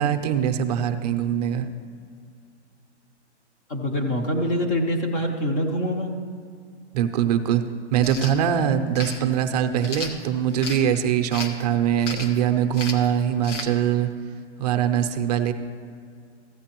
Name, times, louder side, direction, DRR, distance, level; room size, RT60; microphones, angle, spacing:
voice 1, 0.0-1.7 6.9-7.6 7.9-14.1 14.6-15.5, right 9 dB, 35° right, 8 dB, 0.6 m, -22 dB
voice 2, 3.7-6.1, equal, 20° left, 2 dB, 0.5 m, -25 dB
sound 1, 8.0-8.4 9.0-9.2 9.8-10.8 11.3-11.6 12.0-12.4 12.7-13.1 13.4-13.7, left 3 dB, 85° left, 1.3 m, -33 dB
14.5 x 8.3 x 3.0 m, 2.2 s
hypercardioid pair, 145°, 35 cm